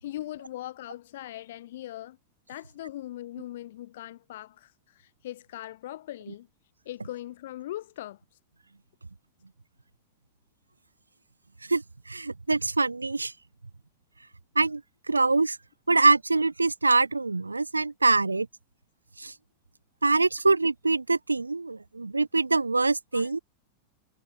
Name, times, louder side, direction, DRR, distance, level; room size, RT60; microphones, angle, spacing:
voice 1, 0.0-2.2 2.5-6.5 6.9-8.2 23.1-23.3, left 14 dB, 55° left, 2.2 m, -40 dB
voice 2, 12.1-13.3 14.6-14.8 15.1-15.6 15.9-18.5 19.2-19.3 20.0-23.4, right 3 dB, 80° right, 0.8 m, -24 dB
figure-of-eight pair, 90°, 0 cm